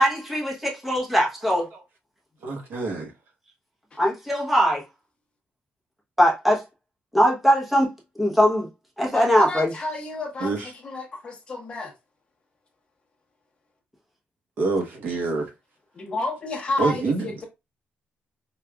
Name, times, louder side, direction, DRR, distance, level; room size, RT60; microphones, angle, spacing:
voice 1, 0.0-1.7 4.0-4.8 6.2-6.6 7.1-7.9 8.2-8.7 9.0-9.7, equal, ahead, 0.9 m, -20 dB
voice 2, 2.4-3.1 10.4-10.7 14.6-15.5 16.8-17.3, right 3 dB, 60° right, 0.9 m, -26 dB
voice 3, 9.1-11.9 15.9-17.4, left 2 dB, 25° left, 1.0 m, -31 dB
4.9 x 2.4 x 2.2 m
cardioid pair, 170°, 4 cm